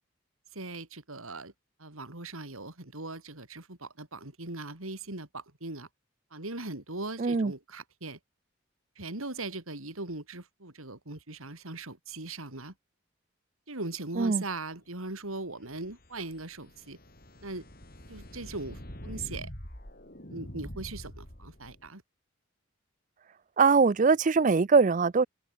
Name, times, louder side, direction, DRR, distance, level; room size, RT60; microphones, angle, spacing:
voice 1, 0.5-1.5 1.8-5.9 6.3-8.2 9.0-12.7 13.7-17.0 17.4-17.7 18.1-19.5 20.3-22.0, right 3 dB, 85° right, 4.2 m, -39 dB
voice 2, 7.2-7.5 14.2-14.4 23.6-25.3, right 4 dB, 35° right, 0.4 m, -22 dB
sound 1, 15.5-21.9, equal, 45° left, 5.2 m, -45 dB
head